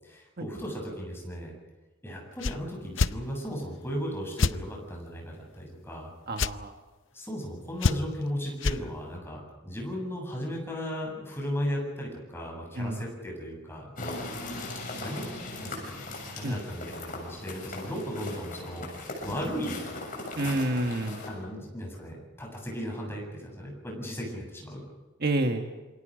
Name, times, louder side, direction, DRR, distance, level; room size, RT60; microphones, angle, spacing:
voice 1, 0.0-1.5 2.0-6.1 7.1-14.1 15.0-15.2 15.6-15.9 16.3-19.8 20.4-20.8 21.3-24.8, equal, 10° left, -1 dB, 7.9 m, -36 dB
sound 1, 2.4-2.6 3.0-3.1 4.4-4.6 6.4-6.5 7.8-8.2 8.6-8.8, left 4 dB, 70° left, 0.6 m, -25 dB
voice 2, 6.3-6.7 12.7-13.0 16.4-16.6 20.3-21.2 25.2-25.6, right 1 dB, 55° right, 4 dB, 1.5 m, -28 dB
sound 2, 14.0-21.3, left 2 dB, 45° left, 7.3 m, -39 dB
28.0 x 24.5 x 5.2 m, 1.2 s
head